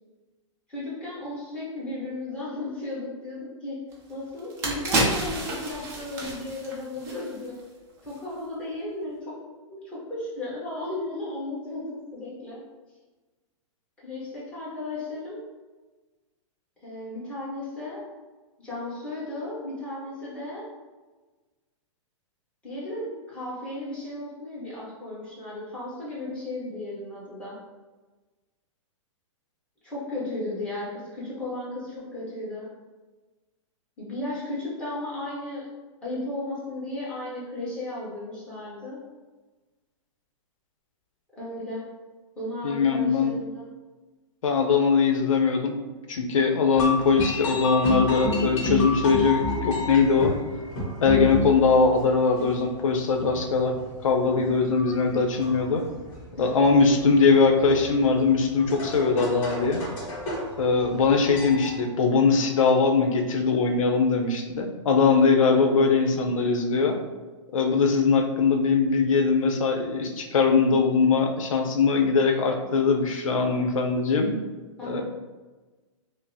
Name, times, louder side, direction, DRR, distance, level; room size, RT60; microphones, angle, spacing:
voice 1, 0.7-3.8 4.1-7.6 8.0-9.3 9.7-12.6 14.0-15.4 16.8-18.0 18.6-20.6 22.6-27.6 29.8-32.7 34.0-35.7 36.0-39.0 41.4-41.9 42.3-43.7 56.4-56.5 65.4-65.9 74.8-75.0, left 1 dB, 5° left, -10 dB, 1.1 m, -35 dB
sound 1, 3.9-4.0 4.4-7.7 8.0-8.2, right 2 dB, 15° right, 0.5 m, -29 dB
voice 2, 42.6-43.3 44.4-45.8 46.1-50.3 51.0-53.7 54.0-55.8 56.4-59.8 60.6-67.0 67.5-74.3 74.8-75.0, left 4 dB, 90° left, 3 dB, 0.7 m, -21 dB
sound 2, 46.7-61.8, left 2 dB, 35° left, 1.4 m, -32 dB
5.0 x 2.0 x 2.7 m, 1.3 s
hypercardioid pair, 165°, 17 cm